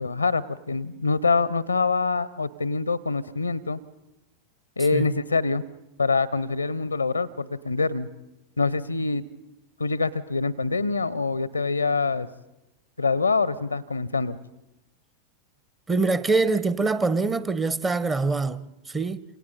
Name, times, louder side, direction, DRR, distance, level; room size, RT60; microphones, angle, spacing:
voice 1, 0.0-3.8 4.8-5.7 6.0-8.1 8.6-9.2 9.8-12.3 13.0-14.4, left 4 dB, 80° left, 0.6 m, -25 dB
voice 2, 15.9-19.2, right 3 dB, 15° right, 0.8 m, -24 dB
27.5 x 27.5 x 4.0 m
figure-of-eight pair, 90°, 0 cm